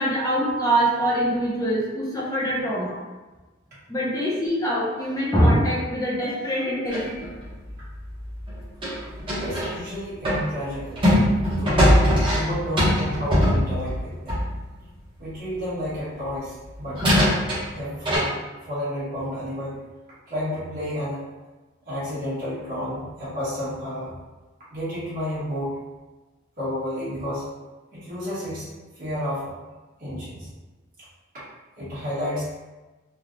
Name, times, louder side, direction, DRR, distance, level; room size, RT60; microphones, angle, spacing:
voice 1, 0.0-3.0 3.9-7.3, equal, 20° left, -7 dB, 0.7 m, -23 dB
sound 1, 6.9-9.8 10.2-14.6 16.3-16.4 16.9-18.2, equal, 25° right, 0.9 m, -22 dB
voice 2, 9.4-11.2 11.5-11.8 12.3-14.4 15.2-17.2 17.7-18.4 18.6-19.8 20.3-21.3 21.9-24.1 24.7-25.8 26.6-27.5 27.9-28.7 28.9-29.5 30.0-30.5 31.8-32.5, equal, 45° right, -12 dB, 1.3 m, -31 dB
3.2 x 2.3 x 2.5 m, 1.2 s
head